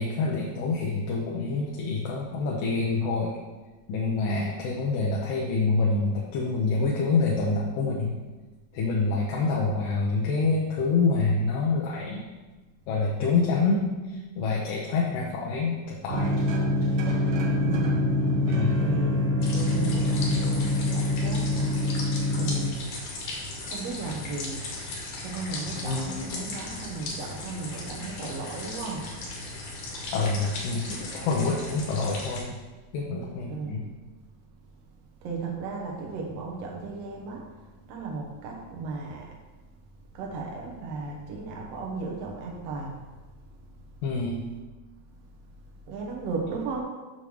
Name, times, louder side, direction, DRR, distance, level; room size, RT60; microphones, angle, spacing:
voice 1, 0.0-3.4 3.9-8.1 8.7-12.3 12.9-16.4 18.5-18.8 30.1-32.6 32.9-33.8 44.0-44.4, left 3 dB, 85° left, -3 dB, 2.4 m, -26 dB
sound 1, 16.1-22.7, left 1 dB, 90° right, 1.2 m, -25 dB
voice 2, 17.6-18.0 18.7-22.0 22.3-23.0 23.6-24.7 25.2-29.1 33.5-33.7 35.2-37.4 37.9-39.4 40.1-43.0 45.9-46.8, right 4 dB, 65° right, 0 dB, 1.7 m, -35 dB
sound 2, 19.4-32.4, left 2 dB, 65° left, 2.5 m, -36 dB
7.0 x 3.3 x 6.2 m, 1.2 s
omnidirectional pair, 3.8 m